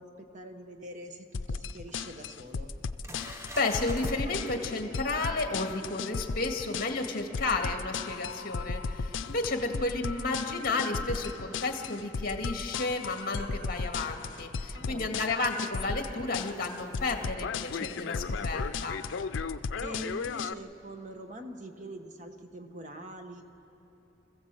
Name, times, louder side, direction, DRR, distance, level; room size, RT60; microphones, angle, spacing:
voice 1, 0.0-2.8 3.3-3.4 14.7-15.1 19.8-23.4, right 1 dB, 40° right, 5 dB, 1.3 m, -44 dB
sound 1, 1.3-20.5, left 5 dB, 90° left, 0.5 m, -35 dB
sound 2, 1.9-2.0 2.5-2.6 3.0-4.2 9.3-9.4 12.2-12.3 13.9-14.0 15.4-17.3, right 1 dB, 15° right, 0.9 m, -47 dB
voice 2, 3.2-19.0, left 3 dB, 50° left, 3 dB, 2.0 m, -32 dB
26.0 x 15.5 x 7.7 m, 3.0 s
head